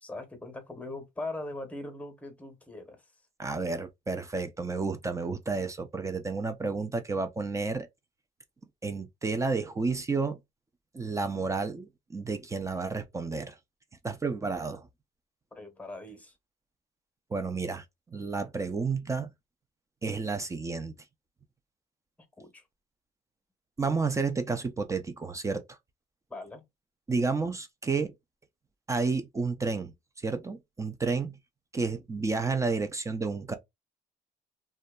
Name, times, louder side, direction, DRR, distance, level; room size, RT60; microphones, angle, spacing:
voice 1, 0.0-3.1 15.5-16.3 22.4-22.6 26.3-26.6, left 2 dB, 10° left, 0.9 m, -40 dB
voice 2, 3.4-7.9 8.8-10.4 10.9-13.5 14.0-14.9 17.3-17.8 18.1-19.3 20.0-20.9 23.8-25.6 27.1-28.1 28.9-29.9 30.2-31.3 31.7-33.5, right 4 dB, 20° right, 0.4 m, -31 dB
2.6 x 2.2 x 2.2 m
cardioid pair, 110°, 17 cm